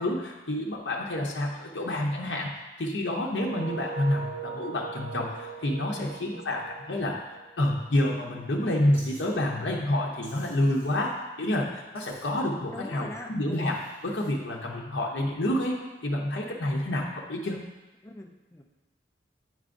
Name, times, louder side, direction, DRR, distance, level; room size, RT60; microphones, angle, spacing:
voice 1, 0.0-2.5 2.8-7.2 7.6-17.6, left 1 dB, 80° left, -2 dB, 0.8 m, -28 dB
sound 1, 3.3-8.1, right 6 dB, 70° right, 0.3 m, -40 dB
voice 2, 5.9-6.6 12.7-13.8 18.0-18.6, left 1 dB, 15° left, 2 dB, 0.5 m, -42 dB
Wild animals, 8.9-9.2 10.2-11.1 11.9-12.5 13.5-14.3, equal, 15° right, 1.7 m, -51 dB
9.2 x 4.7 x 2.6 m, 1.1 s
head